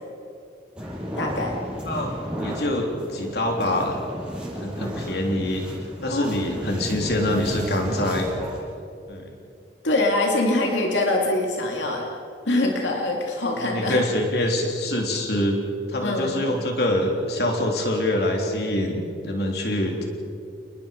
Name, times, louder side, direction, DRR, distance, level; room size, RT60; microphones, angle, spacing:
sound 1, 0.8-8.6, equal, 5° right, 7.1 m, -33 dB
voice 1, 1.2-1.6 6.1-6.5 9.8-12.1 12.5-14.0 16.0-16.5, left 2 dB, 90° left, 0 dB, 2.6 m, -24 dB
voice 2, 1.9-4.0 4.6-5.6 6.0-8.3 9.1-9.3 13.6-15.6 15.9-20.0, left 1 dB, 60° left, 1 dB, 3.5 m, -25 dB
29.5 x 20.5 x 5.3 m, 2.5 s
head